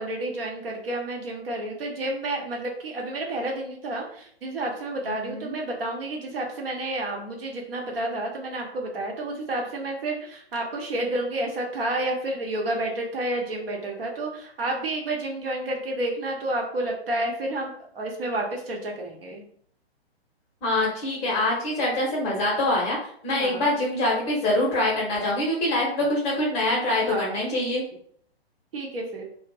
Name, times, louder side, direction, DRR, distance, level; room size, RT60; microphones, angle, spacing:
voice 1, 0.0-19.4 23.3-23.7 27.0-27.5 28.7-29.2, right 1 dB, 60° right, 0 dB, 0.9 m, -30 dB
voice 2, 5.0-5.5 20.6-23.0 23.2-27.8, left 1 dB, 20° left, -3 dB, 0.7 m, -24 dB
2.4 x 2.1 x 3.3 m, 0.62 s
figure-of-eight pair, 120°, 32 cm